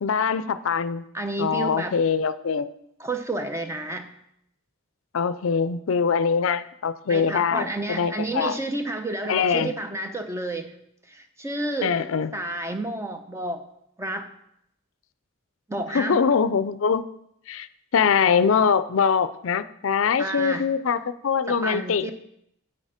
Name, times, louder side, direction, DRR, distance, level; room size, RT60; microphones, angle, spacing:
voice 1, 0.0-1.0 1.4-2.7 5.1-8.6 9.3-9.7 11.8-12.3 15.9-17.0 17.5-17.7 17.9-22.1, left 6 dB, 70° left, 15 dB, 0.4 m, -23 dB
voice 2, 1.1-2.0 3.0-4.1 7.1-10.7 11.1-12.1 12.3-13.6 14.0-14.3 15.7-16.2 20.2-20.7 21.5-22.1, right 2 dB, 15° right, 7 dB, 0.7 m, -30 dB
8.6 x 6.4 x 5.0 m, 0.74 s
head